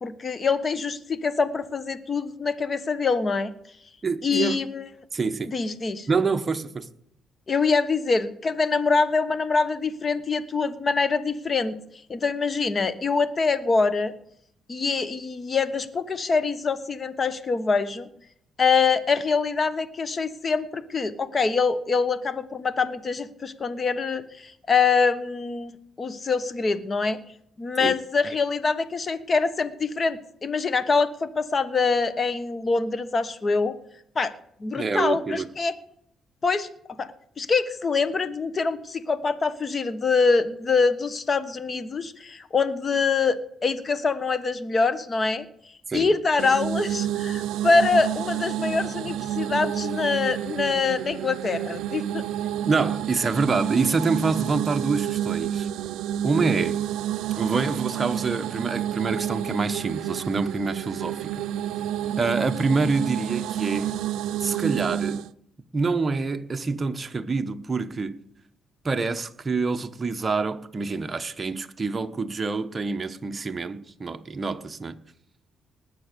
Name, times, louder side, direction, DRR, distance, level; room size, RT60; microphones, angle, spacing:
voice 1, 0.0-3.5 4.2-4.8 5.5-6.1 7.5-11.8 12.1-14.1 14.7-18.1 18.6-27.2 27.6-33.7 34.1-34.3 34.6-35.7 36.4-36.7 37.0-45.5 45.9-52.2, left 4 dB, 35° left, 1.3 m, -24 dB
voice 2, 4.0-4.6 5.1-5.5 6.1-6.9 27.8-27.9 34.7-35.5 45.9-46.1 52.7-55.7 56.2-56.8 57.4-61.3 62.2-63.9 64.4-65.2 65.7-68.2 68.8-75.0, right 4 dB, 30° right, 1.0 m, -26 dB
sound 1, 46.4-65.3, right 11 dB, 90° right, 0.4 m, -29 dB
19.5 x 7.1 x 6.8 m
cardioid pair, 100°, 0 cm